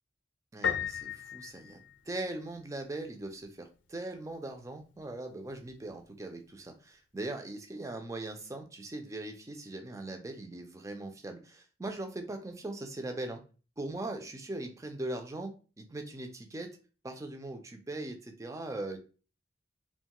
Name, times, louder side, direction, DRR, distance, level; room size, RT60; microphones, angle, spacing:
voice 1, 0.5-1.8 2.1-13.4 13.8-16.7 17.0-19.0, right 2 dB, 15° right, 5 dB, 0.4 m, -40 dB
Piano, 0.6-2.5, left 8 dB, 75° left, 0.4 m, -35 dB
2.5 x 2.2 x 2.9 m, 0.35 s
head